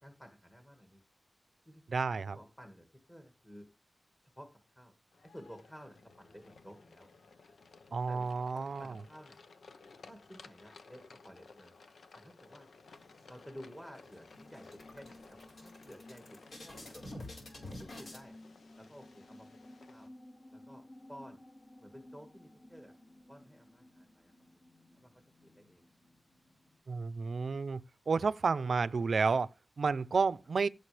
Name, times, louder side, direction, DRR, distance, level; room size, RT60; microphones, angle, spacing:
voice 1, 0.0-1.0 1.7-1.8 2.3-3.7 4.4-4.9 5.2-7.1 8.1-9.4 10.1-11.7 12.1-12.7 13.3-17.3 17.8-18.4 18.8-19.5 19.9-20.1 20.5-21.4 21.8-22.9 23.3-24.3 25.0-25.9 27.0-27.3, equal, 10° left, 1.8 m, -53 dB
voice 2, 1.9-2.4 7.9-8.9 26.9-27.8 28.1-30.7, right 4 dB, 60° right, 0.6 m, -31 dB
sound 1, 5.1-20.1, left 4 dB, 75° left, 0.9 m, -58 dB
sound 2, 12.9-13.7 14.0-14.2 14.5-18.2, left 1 dB, 60° left, 4.5 m, -49 dB
sound 3, 14.3-26.8, left 1 dB, 35° left, 2.3 m, -56 dB
16.0 x 6.7 x 3.4 m
wide cardioid pair, 95°, 0 cm